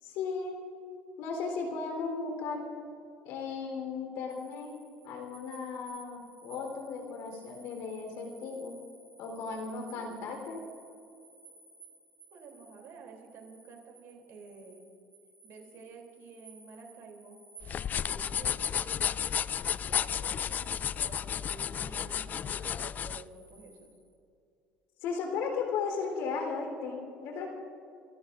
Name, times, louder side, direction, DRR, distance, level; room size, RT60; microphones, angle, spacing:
voice 1, 0.0-0.6 1.2-2.7 3.2-8.7 9.2-10.6 25.0-27.5, left 5 dB, 75° left, 2 dB, 3.7 m, -36 dB
sound 1, 4.3-24.1, right 3 dB, 15° right, 2.8 m, -57 dB
voice 2, 9.6-10.2 12.3-14.9 15.4-17.4 17.9-19.4 19.9-23.9, right 4 dB, 65° right, 2 dB, 3.1 m, -51 dB
sound 2, 17.6-23.2, left 8 dB, 40° left, 0.3 m, -32 dB
29.5 x 14.5 x 2.6 m, 2.6 s
supercardioid pair, 95°, 4 cm